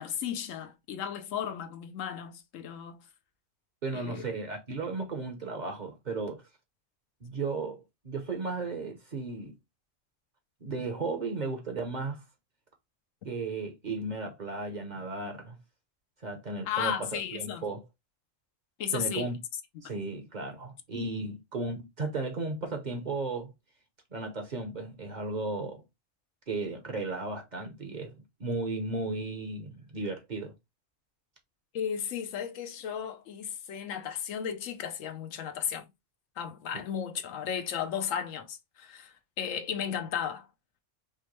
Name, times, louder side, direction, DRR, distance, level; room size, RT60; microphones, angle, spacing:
voice 1, 0.0-3.0 3.9-4.2 16.6-17.6 18.8-19.3 31.7-35.8 36.4-40.5, left 8 dB, 80° left, 1.1 m, -34 dB
voice 2, 3.8-6.4 7.2-9.5 10.6-12.2 13.2-15.6 16.2-17.8 18.9-19.4 19.8-23.5 24.1-25.8 26.5-30.5, right 3 dB, 40° right, 0.8 m, -35 dB
5.1 x 2.2 x 3.0 m
omnidirectional pair, 1.3 m